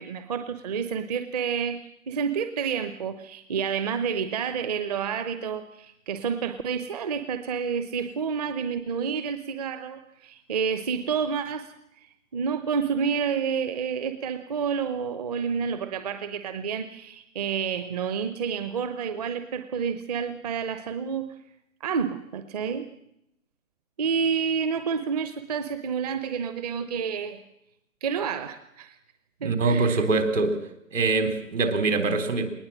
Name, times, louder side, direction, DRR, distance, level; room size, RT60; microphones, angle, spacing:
voice 1, 0.0-1.8 2.1-11.7 12.0-21.3 21.8-22.9 24.0-27.4 28.0-29.0 29.4-30.0, right 6 dB, 30° right, 9 dB, 0.9 m, -29 dB
voice 2, 29.4-30.6 30.9-32.5, right 3 dB, 60° right, 8 dB, 4.0 m, -23 dB
21.0 x 19.5 x 7.6 m, 0.80 s
figure-of-eight pair, 140°, 42 cm